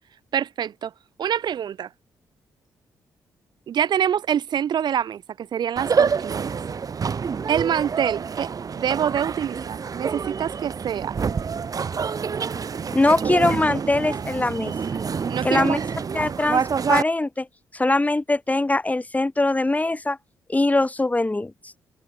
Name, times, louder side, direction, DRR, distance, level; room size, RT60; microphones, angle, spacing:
voice 1, 0.3-0.9 1.2-1.9 3.7-6.6 7.5-8.5 8.7-11.2 13.1-13.5 15.3-15.8, right 9 dB, 65° right, 5.4 m, -26 dB
sound 1, 5.8-17.0, right 6 dB, 50° right, 5.8 m, -27 dB
voice 2, 12.9-14.7 15.4-15.8 16.1-16.6 16.9-17.5 17.7-20.2 20.5-21.5, left 2 dB, 20° left, 6.3 m, -22 dB
supercardioid pair, 60°, 8 cm